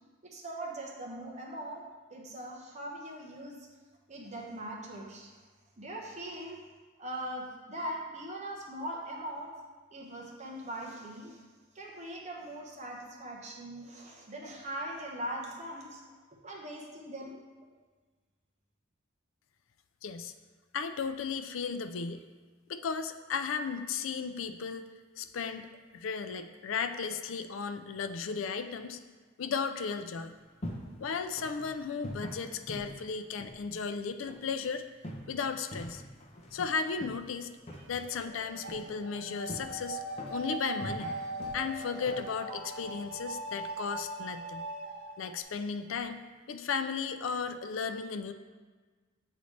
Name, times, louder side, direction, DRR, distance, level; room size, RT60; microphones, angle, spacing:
voice 1, 0.2-1.8 2.1-3.6 4.1-5.4 5.8-6.6 7.0-9.5 9.9-11.4 11.7-16.0 16.4-17.4, right 1 dB, 35° right, -2 dB, 1.0 m, -41 dB
voice 2, 20.0-20.3 20.7-22.2 22.7-24.9 25.2-25.7 25.9-29.0 29.4-30.3 31.0-34.8 35.3-36.0 36.5-37.5 37.9-40.0 40.3-41.1 41.5-44.7 45.2-48.3, left 5 dB, 70° left, 9 dB, 0.4 m, -35 dB
sound 1, 30.2-43.6, equal, 30° left, 0.8 m, -46 dB
sound 2, 37.8-45.4, right 2 dB, 90° right, 0.8 m, -40 dB
7.9 x 4.0 x 3.2 m, 1.4 s
head